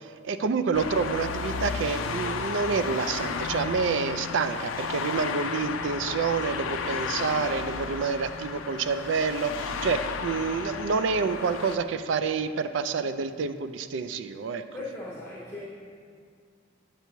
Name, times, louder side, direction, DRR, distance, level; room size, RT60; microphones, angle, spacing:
voice 1, 0.0-14.6, right 5 dB, 65° right, 10 dB, 0.3 m, -28 dB
sound 1, 0.7-11.8, left 5 dB, 85° left, 0.4 m, -33 dB
voice 2, 14.7-15.7, left 2 dB, 10° left, -7 dB, 0.8 m, -38 dB
8.2 x 6.7 x 3.0 m, 2.1 s
head